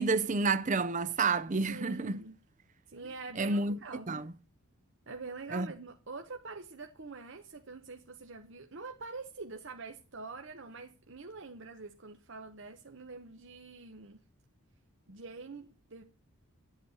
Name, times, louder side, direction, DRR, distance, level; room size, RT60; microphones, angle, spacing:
voice 1, 0.0-2.2 3.4-3.8 4.1-4.3 5.5-5.7, right 3 dB, 35° right, 0.5 m, -29 dB
voice 2, 1.7-2.4 2.9-4.2 5.1-14.2 15.1-16.0, right 4 dB, 55° right, 0.9 m, -45 dB
11.0 x 8.1 x 6.9 m
head